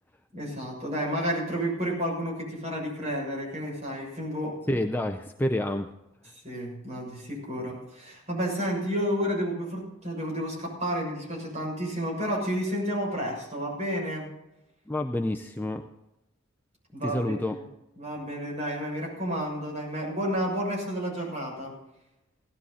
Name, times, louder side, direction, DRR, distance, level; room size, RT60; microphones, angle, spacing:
voice 1, 0.3-4.5 6.4-14.3 16.9-17.4 18.0-21.7, equal, 35° right, -2 dB, 6.8 m, -31 dB
voice 2, 4.7-5.9 14.9-15.8 17.0-17.6, left 1 dB, 10° left, 5 dB, 0.5 m, -28 dB
17.0 x 12.5 x 4.2 m, 0.91 s
head